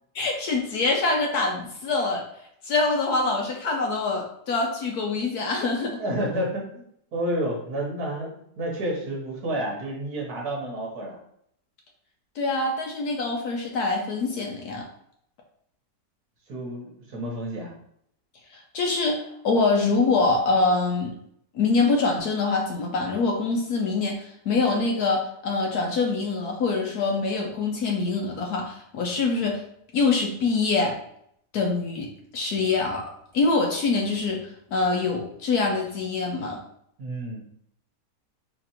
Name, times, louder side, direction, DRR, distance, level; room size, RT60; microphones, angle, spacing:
voice 1, 0.1-2.2 2.6-6.0 12.4-14.8 18.5-21.1 21.5-29.6 29.9-31.0 31.5-33.0 33.3-36.6, left 3 dB, 70° left, 0 dB, 1.1 m, -25 dB
voice 2, 6.0-6.9 7.1-11.2 16.5-17.7 37.0-37.4, right 1 dB, 60° right, -2 dB, 1.6 m, -30 dB
4.2 x 2.9 x 4.3 m, 0.70 s
omnidirectional pair, 1.9 m